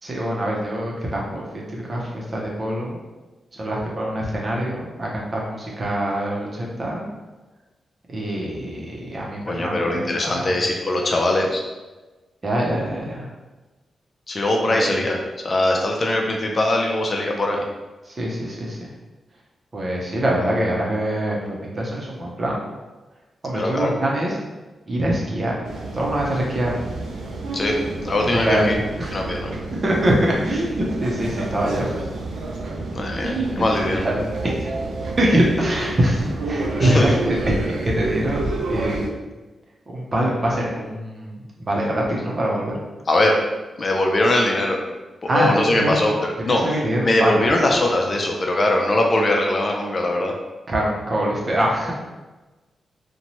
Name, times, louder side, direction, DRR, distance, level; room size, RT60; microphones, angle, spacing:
voice 1, 0.0-3.0 3.5-7.1 8.1-10.6 12.4-13.3 14.7-15.0 18.0-18.9 19.7-22.6 23.4-24.4 24.9-25.6 25.9-26.7 28.2-29.2 29.6-32.0 33.2-33.6 34.0-34.5 35.2-39.2 39.9-42.8 45.3-45.9 46.4-47.4 50.7-51.9, right 1 dB, 45° right, -3 dB, 0.6 m, -24 dB
voice 2, 9.5-11.6 14.3-15.2 15.4-17.6 23.5-23.9 27.5-27.7 28.0-28.7 29.1-29.5 32.9-34.0 36.8-37.1 43.1-43.4 43.8-44.8 45.3-46.6 47.0-50.3, left 1 dB, 45° left, 0 dB, 0.5 m, -21 dB
sound 1, 25.6-39.1, right 2 dB, 90° right, 0.4 m, -29 dB
2.7 x 2.2 x 3.0 m, 1.2 s
cardioid pair, 55°, 0 cm